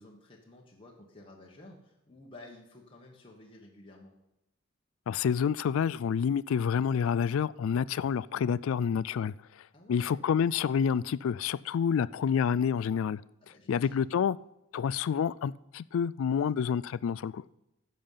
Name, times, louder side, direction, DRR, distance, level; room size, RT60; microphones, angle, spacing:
voice 1, 0.0-4.1 9.7-10.2 13.4-13.9, left 2 dB, 25° left, -2 dB, 1.3 m, -52 dB
voice 2, 5.1-9.3 9.9-13.2 13.7-14.4 14.7-17.4, left 7 dB, 65° left, 19 dB, 0.3 m, -28 dB
10.5 x 7.0 x 5.6 m, 0.91 s
head